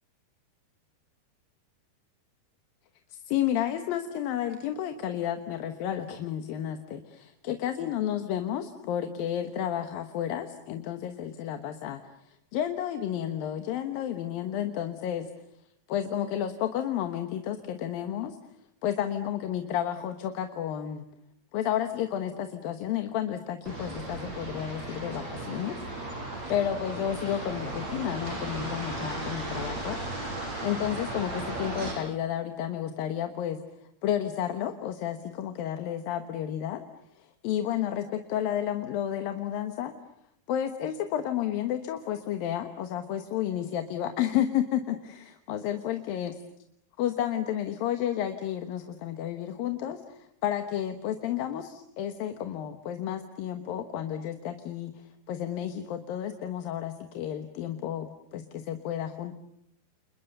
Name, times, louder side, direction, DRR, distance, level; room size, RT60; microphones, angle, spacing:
voice 1, 3.1-15.3 15.9-21.0 21.5-25.8 26.5-30.0 30.6-36.8 37.1-39.9 40.5-46.3 47.0-59.3, left 10 dB, 70° left, 7 dB, 2.9 m, -31 dB
sound 1, 23.7-31.9, right 2 dB, 45° right, 6.9 m, -36 dB
30.0 x 29.5 x 6.7 m, 0.76 s
omnidirectional pair, 4.6 m